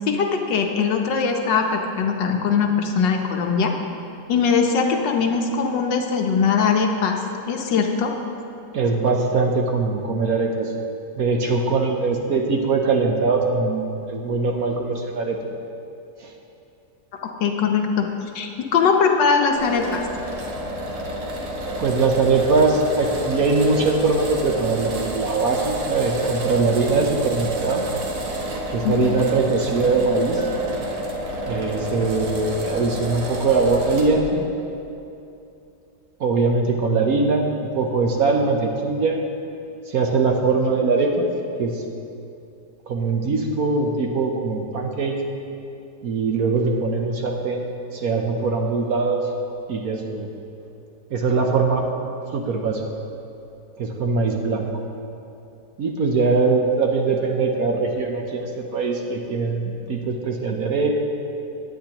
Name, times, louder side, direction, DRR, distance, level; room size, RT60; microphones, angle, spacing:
voice 1, 0.1-3.7 4.3-7.2 7.5-8.1 17.4-18.0 18.3-20.0 28.8-29.1, left 5 dB, 75° left, 3 dB, 1.6 m, -21 dB
voice 2, 8.7-10.7 11.2-15.4 16.2-16.3 21.8-27.8 28.7-30.4 31.5-34.5 36.2-39.2 39.9-41.2 41.6-41.8 42.9-45.2 46.0-49.3 49.7-50.3 51.1-51.9 52.3-52.8 53.8-54.6 55.8-60.9, right 4 dB, 60° right, 2 dB, 1.1 m, -21 dB
sound 1, 19.6-34.2, equal, 80° right, 1.9 m, -30 dB
sound 2, 20.6-20.7 21.7-22.0 22.4-22.7 23.7-24.0 24.5-24.8 26.2-26.5 27.7-28.0 29.1-29.5 30.4-30.7, right 5 dB, 25° right, 1.3 m, -31 dB
17.0 x 9.4 x 2.9 m, 2.8 s
omnidirectional pair, 2.0 m